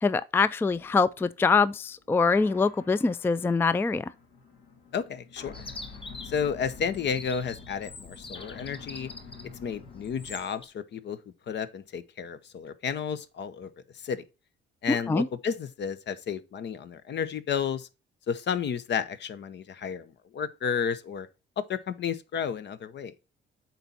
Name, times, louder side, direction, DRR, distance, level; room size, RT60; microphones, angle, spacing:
voice 1, 0.0-4.1 14.9-15.3, left 4 dB, 10° left, 0.3 m, -24 dB
sound 1, 0.7-10.4, left 4 dB, 80° left, 2.1 m, -48 dB
voice 2, 4.9-5.7 6.2-9.1 9.6-11.2 11.5-14.2 14.8-17.9 18.3-21.3 21.6-23.1, left 7 dB, 60° left, 0.9 m, -32 dB
Chirp tweet, 5.5-10.7, left 2 dB, 25° left, 1.0 m, -45 dB
7.9 x 4.2 x 4.3 m
cardioid pair, 90°, 20 cm